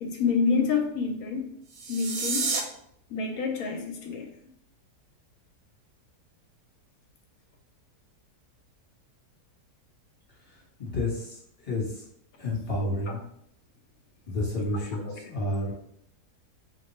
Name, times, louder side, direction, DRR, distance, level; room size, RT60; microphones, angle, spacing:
voice 1, 0.0-1.5 1.9-2.6 3.1-4.3 12.8-12.9 14.7-15.2, left 5 dB, 70° left, 3 dB, 0.9 m, -28 dB
sound 1, 1.6-2.6, right 4 dB, 70° right, 0.9 m, -29 dB
voice 2, 10.8-11.4 11.6-12.0 12.4-13.2 14.3-15.7, left 1 dB, 25° left, -5 dB, 0.9 m, -30 dB
2.7 x 2.2 x 4.1 m, 0.71 s
omnidirectional pair, 1.7 m